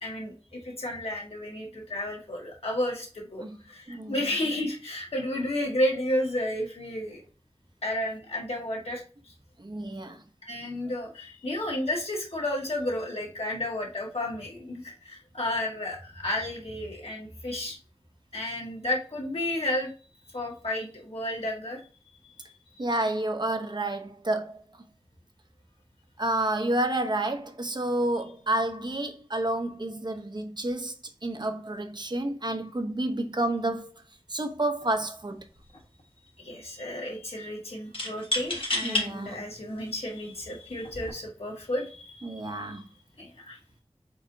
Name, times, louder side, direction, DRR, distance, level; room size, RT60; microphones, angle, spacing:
voice 1, 0.0-7.2 7.8-9.0 10.5-17.8 18.3-19.9 20.3-21.8 36.4-42.8 43.2-43.6, left 1 dB, 80° left, 1.6 m, -32 dB
voice 2, 9.6-10.2 22.8-24.6 26.2-33.9 34.3-35.4 38.8-39.5 42.2-42.8, right 1 dB, 45° right, 0.8 m, -30 dB
sound 1, 34.8-35.0 35.4-36.0 37.9-39.1 39.8-39.9 40.8-41.1, left 2 dB, 65° left, 1.4 m, -30 dB
4.7 x 4.1 x 2.6 m
wide cardioid pair, 50°, 10 cm